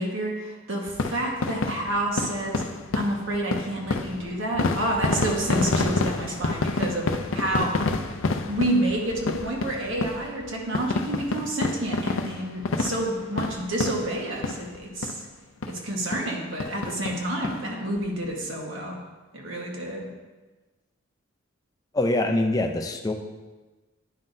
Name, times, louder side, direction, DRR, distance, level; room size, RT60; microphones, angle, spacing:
voice 1, 0.0-2.6 2.9-7.9 8.5-15.2 15.7-19.0 19.3-20.1, right 1 dB, 65° right, -1 dB, 1.4 m, -29 dB
sound 1, 0.9-14.8 15.0-15.2 15.6-15.7 16.1-16.3 16.6-17.6 18.0-18.1 18.2-18.3, left 3 dB, 70° left, 0.5 m, -28 dB
voice 2, 21.9-23.1, left 2 dB, 15° left, 4 dB, 0.5 m, -24 dB
10.5 x 5.6 x 2.7 m, 1.2 s
head